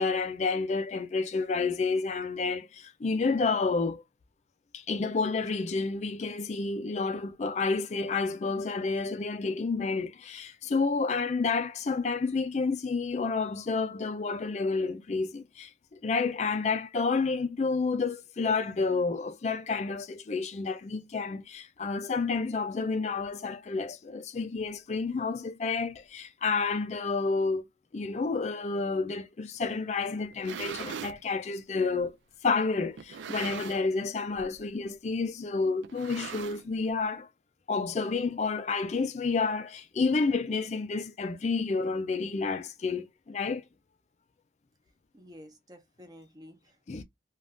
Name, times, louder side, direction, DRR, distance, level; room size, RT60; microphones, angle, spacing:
voice 1, 0.0-4.0 4.7-27.6 27.9-32.2 32.4-37.3 37.7-43.6 46.9-47.0, left 4 dB, 40° left, 0.3 m, -30 dB
sound 1, 30.2-31.2 32.0-32.1 33.0-34.0 34.3-34.6 34.8-34.9 35.8-36.9, right 7 dB, 85° right, 0.4 m, -40 dB
voice 2, 45.1-47.0, equal, 20° right, 0.6 m, -52 dB
2.5 x 2.3 x 3.3 m
head